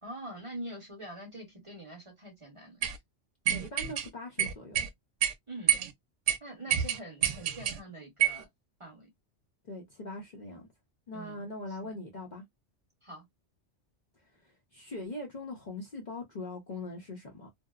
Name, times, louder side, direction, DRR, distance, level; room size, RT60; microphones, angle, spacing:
voice 1, 0.0-2.8 5.5-5.8 6.4-8.5 8.8-9.1 11.1-11.5 11.8-12.0 13.0-13.2, right 1 dB, 30° right, 1.0 m, -44 dB
sound 1, 2.8-3.0 3.5-4.1 4.4-4.9 5.2-5.3 5.7-5.9 6.3-6.4 6.7-7.8 8.2-8.4, right 10 dB, 85° right, 0.9 m, -27 dB
voice 2, 3.5-4.9 6.6-6.8 9.6-10.7 11.1-12.4 14.4-17.5, left 2 dB, 45° left, 0.7 m, -41 dB
2.7 x 2.0 x 2.3 m
omnidirectional pair, 1.2 m